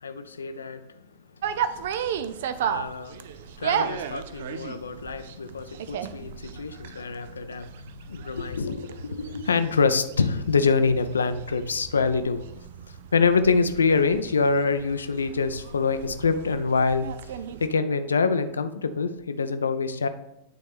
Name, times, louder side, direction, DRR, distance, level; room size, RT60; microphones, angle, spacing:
voice 1, 0.0-0.8 2.7-3.3 3.6-12.4 13.1-17.1 17.6-20.1, left 4 dB, 70° left, 10 dB, 0.4 m, -25 dB
sound 1, 1.4-17.7, right 8 dB, 55° right, 0.4 m, -35 dB
9.2 x 4.1 x 3.4 m, 0.84 s
figure-of-eight pair, 90°, 0 cm